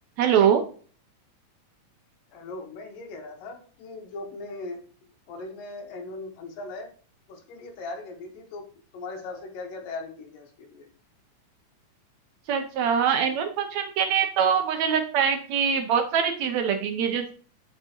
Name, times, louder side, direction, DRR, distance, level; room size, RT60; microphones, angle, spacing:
voice 1, 0.2-0.6 12.5-17.3, right 7 dB, 75° right, 6 dB, 1.7 m, -23 dB
voice 2, 2.3-4.8 5.3-6.9 7.3-8.7 8.9-10.9, left 3 dB, 80° left, 2 dB, 3.1 m, -39 dB
7.5 x 6.8 x 2.9 m, 0.42 s
omnidirectional pair, 3.9 m